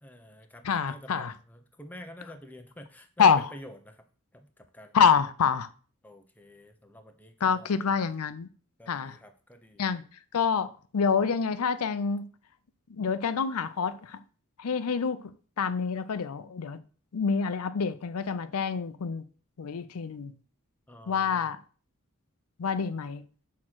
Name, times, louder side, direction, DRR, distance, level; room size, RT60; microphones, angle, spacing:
voice 1, 0.0-4.1 4.3-5.0 6.0-7.8 8.8-9.9 20.9-21.5, equal, 5° left, 0.6 m, -48 dB
voice 2, 0.6-1.3 3.2-3.5 4.9-5.7 7.4-8.5 8.9-9.2 9.8-10.0 10.3-12.3 12.9-14.2 14.6-15.2 15.6-16.8 17.1-19.2 19.6-20.3 21.1-21.6 22.6-23.2, left 6 dB, 75° left, 0.5 m, -27 dB
6.2 x 3.7 x 6.1 m
head